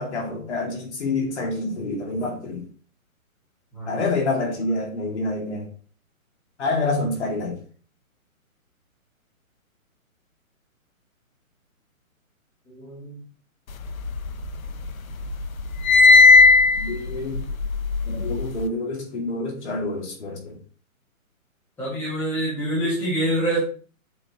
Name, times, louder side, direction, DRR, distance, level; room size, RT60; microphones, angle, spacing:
voice 1, 0.0-2.6 3.9-5.7 6.6-7.5 16.8-17.4 18.1-20.6, left 2 dB, 50° left, -1 dB, 2.4 m, -27 dB
voice 2, 12.7-13.2 21.8-23.6, right 1 dB, 5° left, -8 dB, 1.4 m, -26 dB
sound 1, 13.8-14.9 15.2-18.6, left 4 dB, 75° left, 0.8 m, -16 dB
7.6 x 4.3 x 2.9 m, 0.42 s
hypercardioid pair, 170°, 42 cm